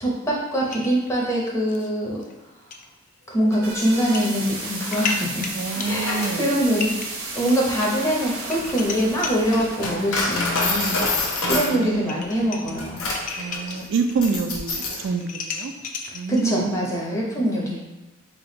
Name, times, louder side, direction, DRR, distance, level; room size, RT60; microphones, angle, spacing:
voice 1, 0.0-2.2 3.3-5.5 5.8-6.9 7.3-11.0 11.4-13.1 16.3-17.8, equal, 15° left, -3 dB, 0.7 m, -23 dB
sound 1, 0.6-1.9 2.2-2.3 2.7-2.9 3.9-4.3 4.7-10.9 11.6-11.7 12.0-14.4 14.6-16.5, left 4 dB, 40° left, 0.3 m, -35 dB
sound 2, 3.2-10.5, right 3 dB, 80° right, 0.9 m, -34 dB
Coin (dropping), 4.6-15.1, left 2 dB, 80° left, 0.8 m, -29 dB
voice 2, 5.5-6.5 11.4-12.2 13.4-15.7 16.1-16.9 17.3-17.5, right 4 dB, 60° right, 5 dB, 0.3 m, -27 dB
3.4 x 2.3 x 3.8 m, 1.1 s
head